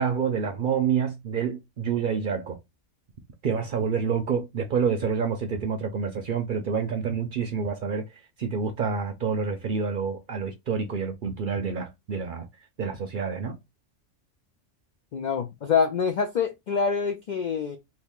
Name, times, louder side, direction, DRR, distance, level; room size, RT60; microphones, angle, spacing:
voice 1, 0.0-2.6 3.4-8.0 8.4-12.5 12.8-13.6, right 6 dB, 60° right, 0.5 m, -28 dB
voice 2, 15.1-17.8, left 6 dB, 80° left, 0.4 m, -26 dB
2.8 x 2.7 x 3.4 m
omnidirectional pair, 1.3 m